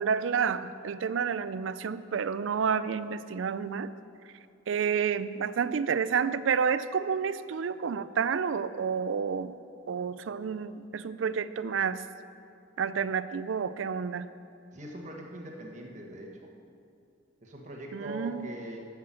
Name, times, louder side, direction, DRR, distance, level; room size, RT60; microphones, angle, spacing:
voice 1, 0.0-3.9 4.7-9.5 9.9-12.0 12.8-14.3 17.9-18.5, right 6 dB, 75° right, 14 dB, 0.4 m, -30 dB
voice 2, 14.7-16.4 17.4-18.8, right 1 dB, 40° right, 0 dB, 1.3 m, -42 dB
12.0 x 5.9 x 7.5 m, 2.5 s
head